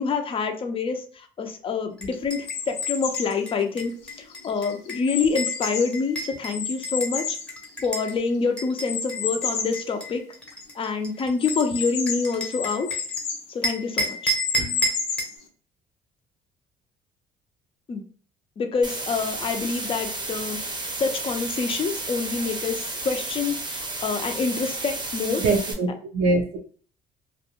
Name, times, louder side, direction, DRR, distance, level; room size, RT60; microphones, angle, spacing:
voice 1, 0.0-7.4 7.8-10.2 10.7-12.9 13.5-14.3 17.9-18.0 18.6-20.6 21.0-25.4, left 4 dB, 30° left, 5 dB, 0.5 m, -27 dB
sound 1, 2.0-8.1 8.6-13.2 13.6-15.4, equal, 5° left, 0.8 m, -32 dB
sound 2, 2.4-3.4 4.0-6.0 6.5-8.2 8.9-9.8 10.3-10.4 10.6-10.7 11.4-13.5 14.1-15.4, left 6 dB, 90° left, 0.6 m, -31 dB
sound 3, 18.8-25.7, right 2 dB, 25° right, 0.7 m, -32 dB
voice 2, 25.4-26.6, right 3 dB, 75° right, 0 dB, 0.6 m, -23 dB
2.5 x 2.1 x 2.8 m, 0.44 s
cardioid pair, 110°, 17 cm